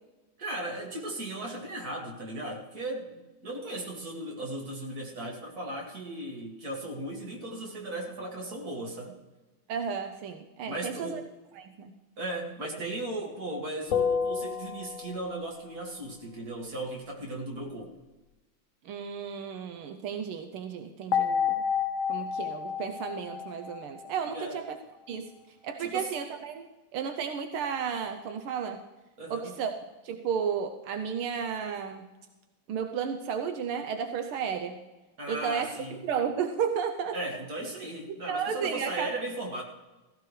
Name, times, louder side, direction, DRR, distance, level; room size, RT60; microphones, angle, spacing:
voice 1, 0.4-9.1 10.6-11.2 12.2-17.9 24.3-24.6 25.8-26.1 29.2-29.6 35.2-36.0 37.1-39.6, right 1 dB, 45° right, -1 dB, 2.7 m, -37 dB
voice 2, 9.7-11.2 11.5-11.9 18.8-21.7 22.1-24.8 25.1-28.9 29.3-29.7 30.0-32.1 32.7-34.8 35.3-35.7 36.0-37.2 38.2-39.1, right 7 dB, 85° right, 6 dB, 1.7 m, -33 dB
sound 1, 13.9-15.4 21.1-24.5, left 7 dB, 60° left, 0.8 m, -30 dB
16.0 x 16.0 x 3.3 m, 1.1 s
omnidirectional pair, 2.3 m